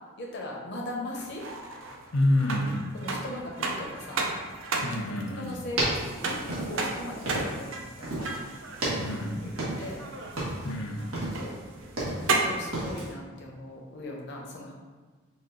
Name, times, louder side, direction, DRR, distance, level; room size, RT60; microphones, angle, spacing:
voice 1, 0.2-1.4 2.9-4.2 5.4-8.4 9.4-9.5 9.8-10.0 11.3-11.6 12.1-14.7, left 1 dB, 55° left, -2 dB, 0.8 m, -39 dB
sound 1, 1.1-12.7, right 3 dB, 60° right, 0.5 m, -34 dB
voice 2, 2.1-2.8 4.8-5.6 8.9-9.4 10.6-11.1, left 1 dB, 85° left, 2 dB, 0.7 m, -28 dB
sound 2, 5.5-7.7 8.0-8.4 8.7-10.0 10.3-10.7 11.1-12.4 12.7-13.1, right 1 dB, 85° right, 1.5 m, -32 dB
4.9 x 2.5 x 3.9 m, 1.4 s
head